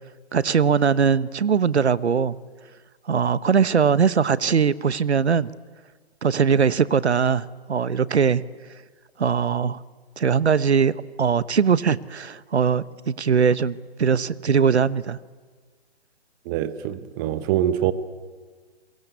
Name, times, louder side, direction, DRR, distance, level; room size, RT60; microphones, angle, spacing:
voice 1, 0.3-2.4 3.1-5.5 6.2-8.4 9.2-9.8 10.2-10.9 11.2-15.2, right 6 dB, 85° right, 1.1 m, -21 dB
voice 2, 16.4-17.9, right 11 dB, 20° right, 1.0 m, -24 dB
29.5 x 23.0 x 8.3 m
hypercardioid pair, 150°, 32 cm